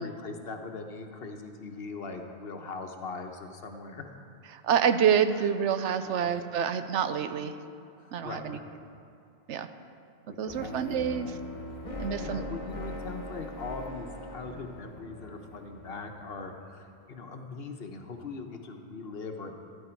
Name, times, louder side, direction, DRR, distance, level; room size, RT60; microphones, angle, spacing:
voice 1, 0.0-4.1 5.3-5.5 6.0-6.3 8.0-8.8 10.4-19.5, left 4 dB, 60° left, 5 dB, 1.1 m, -41 dB
voice 2, 4.5-7.5 8.1-8.6 9.5-9.7 10.4-11.3 12.0-12.4, right 8 dB, 80° right, 10 dB, 0.9 m, -27 dB
sound 1, 10.5-16.6, left 1 dB, 30° left, 1.3 m, -41 dB
13.5 x 11.0 x 4.5 m, 2.5 s
omnidirectional pair, 1.2 m